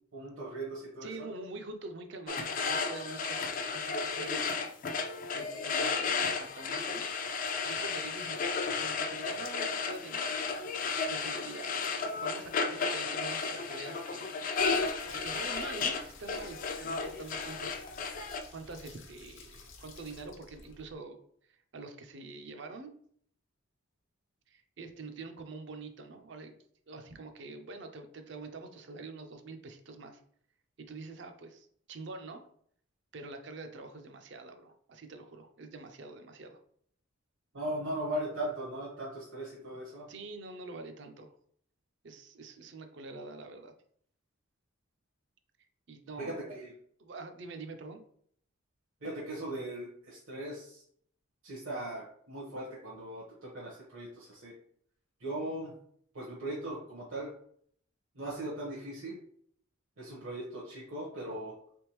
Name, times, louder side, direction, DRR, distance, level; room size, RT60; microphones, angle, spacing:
voice 1, 0.1-1.3 37.5-40.1 46.2-46.7 49.0-50.8 51.4-54.5 55.2-55.7 56.1-57.3 58.1-59.2 60.0-61.5, right 1 dB, 75° right, -6 dB, 1.1 m, -39 dB
voice 2, 1.0-4.7 5.3-7.1 7.6-10.4 10.7-11.9 12.2-14.4 15.1-17.7 18.2-21.2 21.5-22.9 24.5-26.6 26.9-30.2 30.8-32.5 33.1-36.6 40.1-41.3 42.0-43.7 45.9-46.5 47.0-48.0, right 3 dB, 55° right, 6 dB, 0.5 m, -45 dB
sound 1, 2.3-18.4, left 5 dB, 40° left, 0.3 m, -33 dB
sound 2, 14.5-20.9, left 3 dB, 65° left, 0.7 m, -53 dB
3.5 x 3.5 x 3.0 m, 0.63 s
head